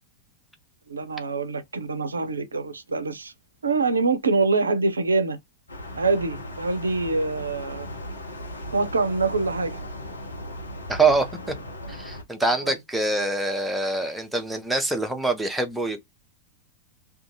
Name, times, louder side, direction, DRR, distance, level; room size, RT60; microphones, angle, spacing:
voice 1, 0.9-3.3 3.6-5.4 6.0-7.9 8.7-9.8 12.6-12.7, right 3 dB, 75° right, 0.4 m, -25 dB
sound 1, 5.7-12.2, left 1 dB, 75° left, 0.9 m, -37 dB
voice 2, 10.9-11.5 11.9-16.0, right 3 dB, 5° right, 0.6 m, -24 dB
2.4 x 2.3 x 2.6 m
figure-of-eight pair, 90°, 0 cm